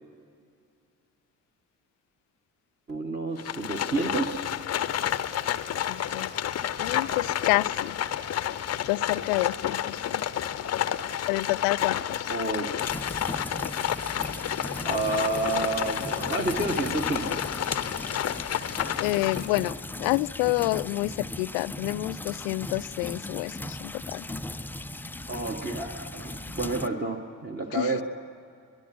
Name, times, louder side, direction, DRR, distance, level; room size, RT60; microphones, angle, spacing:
voice 1, 2.9-4.5 12.3-12.7 14.8-17.5 25.3-28.0, right 2 dB, 20° right, 4 dB, 1.7 m, -30 dB
Livestock farm animals working animals, 3.4-19.7, left 10 dB, 30° left, 0.8 m, -30 dB
voice 2, 5.9-6.3 6.8-8.0 8.9-10.2 11.3-12.3 19.0-24.3 27.7-28.0, left 22 dB, 55° left, 18 dB, 0.5 m, -28 dB
sound 1, 12.8-26.9, left 1 dB, 5° left, 0.5 m, -38 dB
23.0 x 23.0 x 6.2 m, 2.3 s
figure-of-eight pair, 45°, 50 cm